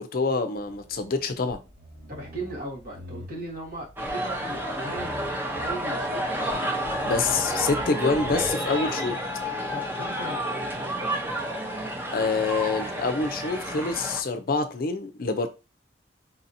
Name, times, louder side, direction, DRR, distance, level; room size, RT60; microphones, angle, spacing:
voice 1, 0.0-1.6 7.0-9.2 12.1-15.5, left 4 dB, 55° left, 0.5 m, -26 dB
sound 1, 0.6-8.5, left 1 dB, 75° right, 2.0 m, -45 dB
voice 2, 2.1-6.6 7.2-7.3 9.7-11.2, right 2 dB, 55° right, 1.5 m, -38 dB
sound 2, 4.0-14.2, equal, 10° right, 0.7 m, -30 dB
4.1 x 2.7 x 2.7 m
head